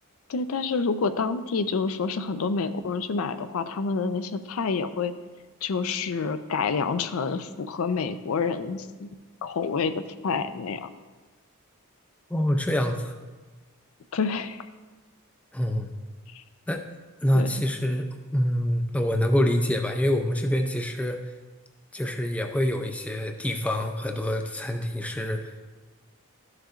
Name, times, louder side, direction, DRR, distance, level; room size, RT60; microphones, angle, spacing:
voice 1, 0.3-5.1 5.6-9.1 9.4-10.9 14.1-14.7 16.3-16.4 17.3-17.5, left 5 dB, 75° left, 11 dB, 0.4 m, -28 dB
voice 2, 12.3-13.1 15.5-15.9 16.7-16.8 17.2-18.1 18.3-21.3 21.9-25.7, equal, 5° left, 4 dB, 0.4 m, -26 dB
12.5 x 6.5 x 2.5 m, 1.3 s
head